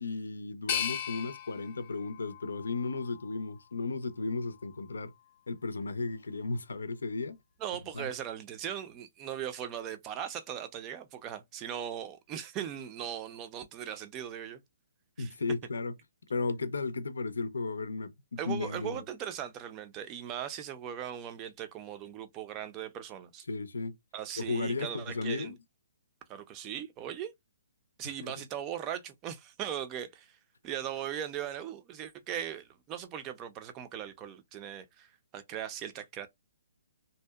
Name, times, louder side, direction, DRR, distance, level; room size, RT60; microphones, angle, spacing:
voice 1, 0.0-5.1 5.5-7.4 7.9-8.1 15.2-15.9 16.3-19.0 23.5-24.0 24.4-25.6 28.2-28.3, left 3 dB, 85° left, 0.5 m, -34 dB
sound 1, 0.7-3.6 4.1-5.0, left 9 dB, 40° left, 0.6 m, -38 dB
voice 2, 7.6-14.6 15.2-15.3 18.4-23.4 24.1-25.5 26.3-27.3 28.0-30.3 30.6-36.3, right 10 dB, 25° right, 0.4 m, -39 dB
2.6 x 2.1 x 2.3 m
hypercardioid pair, 145°, 0 cm